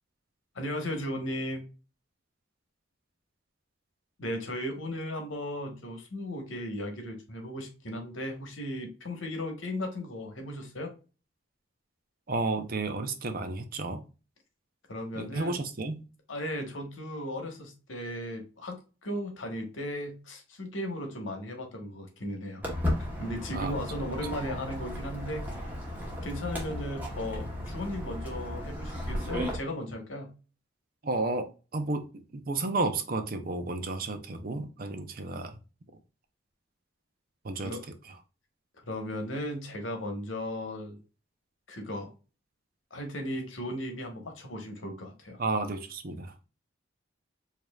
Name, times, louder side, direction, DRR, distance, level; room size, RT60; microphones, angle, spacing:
voice 1, 0.5-1.6 4.2-10.9 14.9-15.6 16.3-18.8 19.0-22.6 23.2-25.7 26.2-30.3 37.6-37.8 38.9-41.0 41.7-42.1 42.9-45.4, left 1 dB, 80° left, 4 dB, 1.2 m, -36 dB
voice 2, 12.3-14.0 15.1-16.0 23.5-23.7 31.0-35.6 37.4-37.8 45.4-46.3, right 3 dB, 50° right, 8 dB, 0.6 m, -32 dB
Walk footsteps, 22.6-29.6, left 1 dB, 10° right, 1.1 m, -35 dB
4.8 x 2.8 x 2.3 m, 0.33 s
head